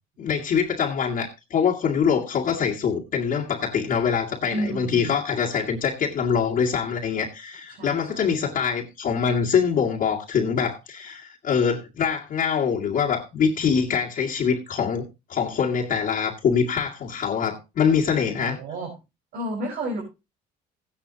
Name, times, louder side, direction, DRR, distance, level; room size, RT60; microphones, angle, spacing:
voice 1, 0.2-18.6, left 6 dB, 55° left, 2.1 m, -24 dB
voice 2, 4.5-5.2 7.7-8.4 18.3-18.9 19.3-20.0, right 1 dB, 70° right, 4.6 m, -31 dB
15.0 x 9.9 x 2.8 m
cardioid pair, 110°, 17 cm